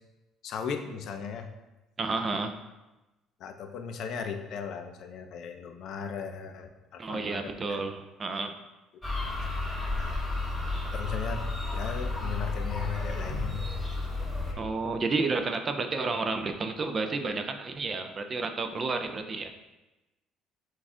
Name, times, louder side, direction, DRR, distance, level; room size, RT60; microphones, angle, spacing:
voice 1, 0.4-1.5 3.4-7.9 9.3-9.4 9.6-10.4 10.9-11.4 11.7-13.8 14.5-14.6, left 7 dB, 55° left, 7 dB, 0.4 m, -37 dB
voice 2, 2.0-2.5 7.0-8.6 14.6-19.5, right 3 dB, 25° right, 7 dB, 0.3 m, -31 dB
sound 1, 9.0-14.5, left 2 dB, 10° left, 0.8 m, -32 dB
6.1 x 2.4 x 3.6 m, 1.0 s
cardioid pair, 150°, 0 cm